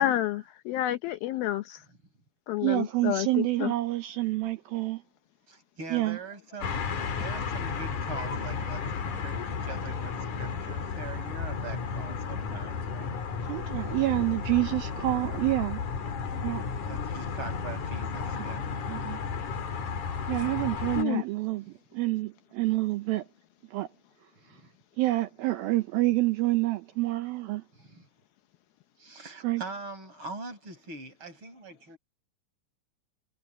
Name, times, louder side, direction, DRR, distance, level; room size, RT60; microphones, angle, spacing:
voice 1, 0.0-1.8 2.5-3.7 21.0-21.2, left 13 dB, 75° left, 2.4 m, -29 dB
voice 2, 2.6-5.0 5.9-6.2 13.5-15.9 16.4-16.6 18.9-19.2 20.3-21.7 21.9-23.3 23.7-23.9 25.0-27.6 29.4-29.6, right 18 dB, 75° right, 2.4 m, -28 dB
voice 3, 5.5-13.2 16.8-18.7 19.0-19.1 24.4-24.7 27.7-28.1 29.0-32.0, right 3 dB, 30° right, 5.8 m, -43 dB
sound 1, 6.6-21.0, left 5 dB, 55° left, 3.4 m, -33 dB
omnidirectional pair, 4.7 m